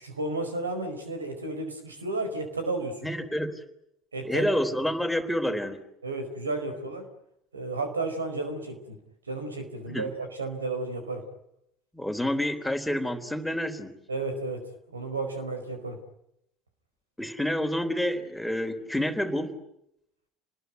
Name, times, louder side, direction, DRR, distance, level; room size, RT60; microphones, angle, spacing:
voice 1, 0.0-3.1 4.1-4.5 6.0-7.1 7.5-9.0 9.3-11.2 14.1-14.6 14.9-16.0, right 2 dB, 90° right, 7 dB, 4.7 m, -32 dB
voice 2, 3.0-3.6 4.2-5.8 9.9-10.1 11.9-14.0 17.2-19.5, equal, 5° left, 6 dB, 3.6 m, -28 dB
29.5 x 20.5 x 9.4 m, 0.80 s
figure-of-eight pair, 65°, 0 cm